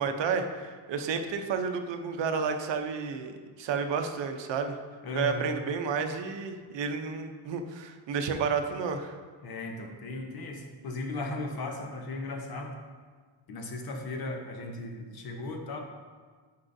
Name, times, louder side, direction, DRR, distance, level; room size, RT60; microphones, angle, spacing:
voice 1, 0.0-4.8 5.1-9.2, right 5 dB, 60° right, 6 dB, 0.7 m, -31 dB
voice 2, 5.0-5.5 9.4-12.8 13.5-15.8, left 2 dB, 50° left, 3 dB, 0.8 m, -36 dB
9.9 x 5.6 x 2.6 m, 1.5 s
cardioid pair, 170°, 48 cm